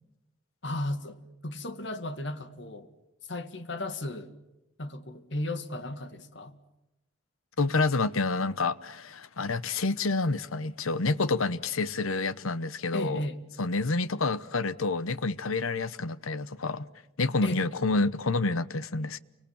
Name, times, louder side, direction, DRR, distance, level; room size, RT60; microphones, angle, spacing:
voice 1, 0.6-2.9 3.3-4.3 4.8-6.6 12.9-13.4 17.4-17.6, left 1 dB, 60° left, 2.0 m, -35 dB
voice 2, 7.6-13.2 13.6-16.9 17.2-19.2, left 3 dB, 85° left, 1.1 m, -28 dB
30.0 x 25.0 x 7.2 m
head